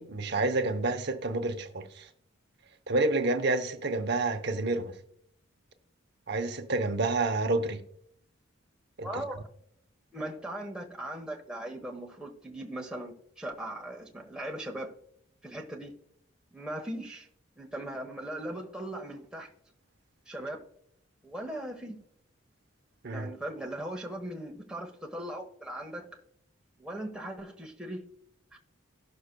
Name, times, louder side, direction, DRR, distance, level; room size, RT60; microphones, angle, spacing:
voice 1, 0.0-2.1 2.9-5.0 6.3-7.8 9.0-9.2 23.0-23.3, right 2 dB, 55° right, 0.8 m, -29 dB
voice 2, 9.0-9.5 10.1-14.9 15.4-15.9 16.5-17.3 17.6-19.5 20.3-20.6 21.2-22.0 23.1-26.1 26.8-28.0 28.5-28.6, right 1 dB, 5° right, 1.1 m, -39 dB
18.0 x 6.5 x 2.2 m
head